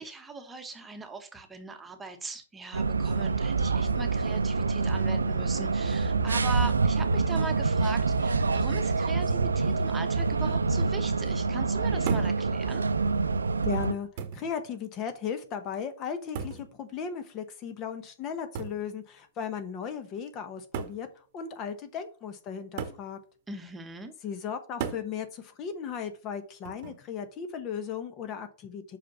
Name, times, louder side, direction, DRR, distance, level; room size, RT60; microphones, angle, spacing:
voice 1, 0.0-12.8 23.5-24.1, right 3 dB, 10° right, 6 dB, 1.2 m, -40 dB
sound 1, 2.7-13.9, right 4 dB, 90° right, 0.5 m, -26 dB
sound 2, 12.1-12.4 13.4-13.5 14.2-14.5 16.3-16.7 18.5-18.8 19.9-20.0 20.7-21.0 22.8-23.1 24.8-25.1 26.6-27.0, right 7 dB, 45° right, 0.9 m, -35 dB
voice 2, 13.6-14.1 14.3-23.2 24.2-29.0, left 7 dB, 30° left, 9 dB, 0.9 m, -36 dB
5.8 x 5.0 x 5.4 m, 0.41 s
hypercardioid pair, 120°, 0 cm